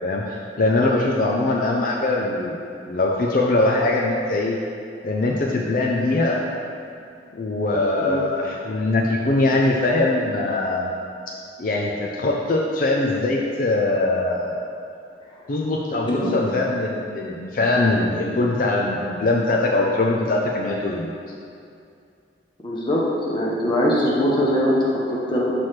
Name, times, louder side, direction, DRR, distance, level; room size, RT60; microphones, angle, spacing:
voice 1, 0.0-2.6 2.9-4.5 5.0-6.4 7.3-10.9 11.6-14.6 15.5-21.1, left 2 dB, 50° left, -2 dB, 0.4 m, -22 dB
voice 2, 16.1-16.4 22.6-25.5, equal, 25° left, -5 dB, 0.8 m, -22 dB
6.0 x 3.2 x 5.8 m, 2.4 s
head